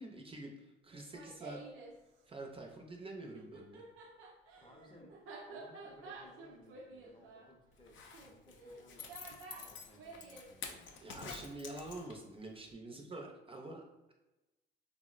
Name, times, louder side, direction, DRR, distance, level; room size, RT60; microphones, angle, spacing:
voice 1, 0.0-1.6 2.3-3.8 11.0-14.1, right 2 dB, 30° right, 1 dB, 0.4 m, -47 dB
Laughter, 0.9-2.0 3.2-10.5, right 3 dB, 85° right, 0.5 m, -51 dB
voice 2, 4.6-5.2 5.5-10.9, left 1 dB, 25° left, 1 dB, 0.6 m, -61 dB
Zipper (clothing), 7.8-12.4 12.7-12.8, left 6 dB, 70° left, 0.5 m, -49 dB
3.6 x 2.0 x 2.4 m, 1.0 s
cardioid pair, 90°, 20 cm